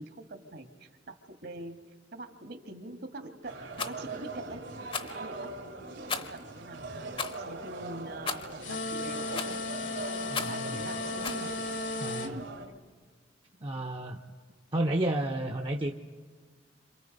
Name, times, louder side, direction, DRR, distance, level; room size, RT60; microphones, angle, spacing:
voice 1, 0.0-1.8 2.1-9.6 10.5-11.5 12.2-12.5, right 1 dB, 60° right, 6 dB, 1.8 m, -44 dB
sound 1, 3.5-12.7, right 3 dB, 75° right, 2.9 m, -42 dB
Rattle, 3.7-4.0 4.9-5.2 6.1-6.4 7.1-7.4 8.3-8.6 9.3-9.7 10.3-10.6 11.2-11.4, left 5 dB, 30° left, 0.9 m, -35 dB
sound 2, 8.6-12.3, left 3 dB, 70° left, 1.6 m, -35 dB
voice 2, 10.2-10.8 12.0-12.4 13.6-14.2 14.7-15.9, right 1 dB, 30° right, 1 dB, 0.8 m, -31 dB
29.0 x 27.0 x 5.4 m, 1.5 s
head